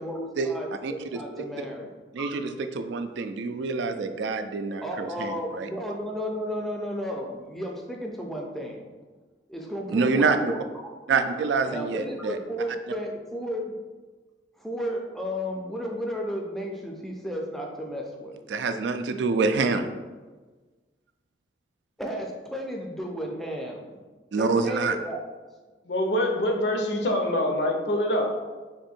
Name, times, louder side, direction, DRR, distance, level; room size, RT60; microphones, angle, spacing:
voice 1, 0.0-2.3 4.8-8.9 9.5-10.6 11.7-13.8 14.6-18.4 22.0-24.1 24.4-25.2, equal, ahead, 0 dB, 0.4 m, -33 dB
voice 2, 2.1-5.7 9.9-10.4 11.1-12.4 18.5-19.9 24.3-25.0, right 4 dB, 80° right, 8 dB, 0.3 m, -26 dB
voice 3, 25.8-28.4, left 1 dB, 70° left, 2 dB, 0.6 m, -25 dB
3.6 x 2.6 x 4.2 m, 1.3 s
head